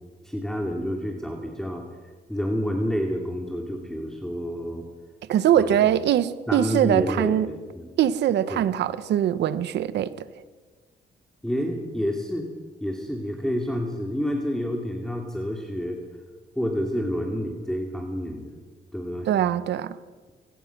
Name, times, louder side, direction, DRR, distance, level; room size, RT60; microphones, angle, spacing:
voice 1, 0.2-1.8 2.3-4.8 5.5-5.8 6.5-7.9 8.5-8.6 11.4-12.5 12.8-16.0 16.6-18.5 18.9-19.3, equal, 5° left, 2.7 m, -29 dB
voice 2, 5.3-7.5 8.0-10.3 19.3-20.0, right 10 dB, 85° right, 1.0 m, -22 dB
25.0 x 18.5 x 6.1 m
cardioid pair, 95°, 17 cm